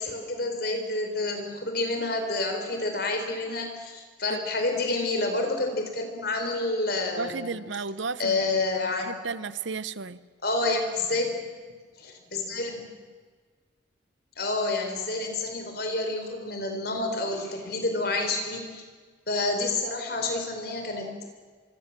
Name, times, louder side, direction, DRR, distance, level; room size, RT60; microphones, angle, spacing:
voice 1, 0.0-7.6 8.2-9.1 10.4-11.5 12.0-12.8 14.4-18.8 19.3-21.3, left 2 dB, 50° left, 5 dB, 4.4 m, -29 dB
voice 2, 7.2-10.2, right 4 dB, 70° right, 15 dB, 0.8 m, -34 dB
26.0 x 24.5 x 7.5 m, 1.5 s
head